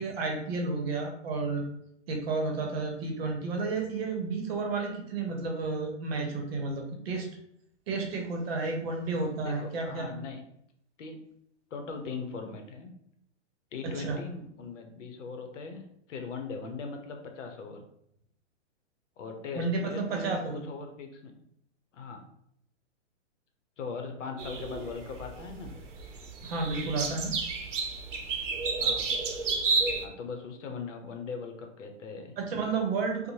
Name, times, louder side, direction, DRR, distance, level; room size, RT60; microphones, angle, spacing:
voice 1, 0.0-1.6 2.1-7.3 7.9-10.1 13.8-14.2 19.5-20.6 26.4-27.4 32.4-33.3, right 3 dB, 55° right, 1 dB, 0.8 m, -31 dB
voice 2, 9.4-10.4 11.0-11.2 11.7-12.9 13.7-15.8 16.1-17.8 19.2-21.3 21.9-22.2 23.8-25.8 28.8-29.1 30.0-32.3, left 4 dB, 80° left, 4 dB, 0.7 m, -39 dB
sound 1, 24.4-30.1, right 4 dB, 85° right, 0.7 m, -31 dB
2.6 x 2.1 x 3.0 m, 0.73 s
hypercardioid pair, 150°, 36 cm